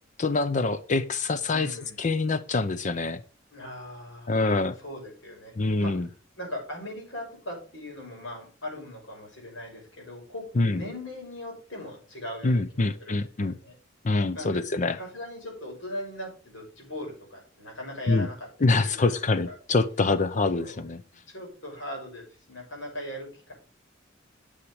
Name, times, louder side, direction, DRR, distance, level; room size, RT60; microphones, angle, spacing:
voice 1, 0.2-3.2 4.3-4.8 5.6-6.1 10.6-10.8 12.4-13.6 14.0-15.0 18.1-18.3 18.6-21.0, left 3 dB, 40° left, 12 dB, 0.6 m, -25 dB
voice 2, 1.5-2.1 3.5-6.1 6.4-10.4 10.7-13.8 14.3-14.6 14.9-19.5 20.6-20.8 21.3-23.5, left 1 dB, 75° left, 0 dB, 6.3 m, -40 dB
10.0 x 7.2 x 4.8 m, 0.37 s
head